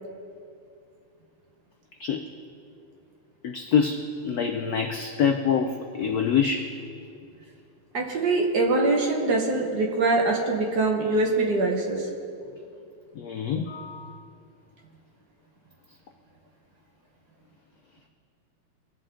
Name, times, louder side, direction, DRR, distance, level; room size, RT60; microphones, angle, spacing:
voice 1, 3.4-6.7 13.2-14.1, left 7 dB, 80° left, 5 dB, 0.8 m, -26 dB
voice 2, 7.9-12.1, right 2 dB, 55° right, 0 dB, 1.8 m, -23 dB
21.0 x 7.5 x 3.8 m, 2.5 s
omnidirectional pair, 2.3 m